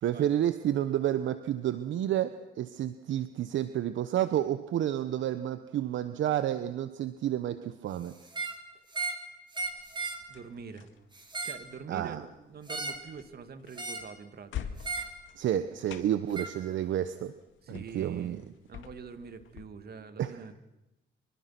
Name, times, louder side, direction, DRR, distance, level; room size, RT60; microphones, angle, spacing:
voice 1, 0.0-8.1 11.9-12.2 15.4-17.3 17.7-18.4 20.2-20.4, right 11 dB, 75° right, 11 dB, 1.1 m, -30 dB
sound 1, 8.2-8.6 8.9-9.2 9.5-10.2 11.1-11.7 12.7-13.1 13.8-14.1 14.8-15.1 16.3-16.5, right 3 dB, 25° right, 3.5 m, -35 dB
sound 2, 9.6-19.6, left 9 dB, 80° left, 2.1 m, -47 dB
voice 2, 10.3-10.9 11.4-14.7 17.6-18.4 18.7-20.5, right 5 dB, 50° right, 9 dB, 2.5 m, -45 dB
26.0 x 24.5 x 6.1 m, 0.95 s
cardioid pair, 90°, 20 cm